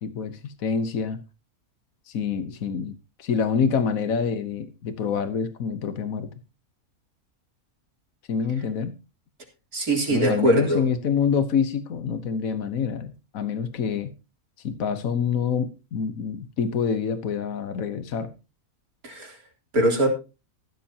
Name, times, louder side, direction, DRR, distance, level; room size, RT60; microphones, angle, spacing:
voice 1, 0.0-1.2 2.1-6.3 8.3-8.9 10.1-14.1 14.6-18.3, left 6 dB, 70° left, 1.5 m, -26 dB
voice 2, 9.7-10.8 19.0-19.4 19.7-20.1, right 1 dB, 90° right, 4.1 m, -22 dB
15.0 x 13.0 x 2.9 m
omnidirectional pair, 1.5 m